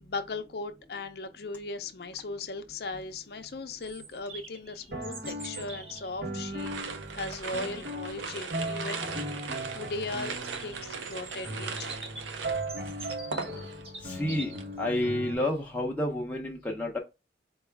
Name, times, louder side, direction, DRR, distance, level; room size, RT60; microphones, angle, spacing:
voice 1, 0.0-11.9, left 3 dB, 55° left, 0.5 m, -38 dB
Bird vocalization bird call bird song, 2.8-15.6, right 3 dB, 30° right, 0.7 m, -48 dB
sound 1, 4.9-15.3, right 1 dB, 60° right, 0.9 m, -38 dB
sound 2, 6.6-14.0 14.3-14.7, right 5 dB, 90° right, 0.5 m, -39 dB
voice 2, 14.0-14.5 14.8-17.0, left 1 dB, 10° left, 0.6 m, -30 dB
4.6 x 2.3 x 3.3 m
head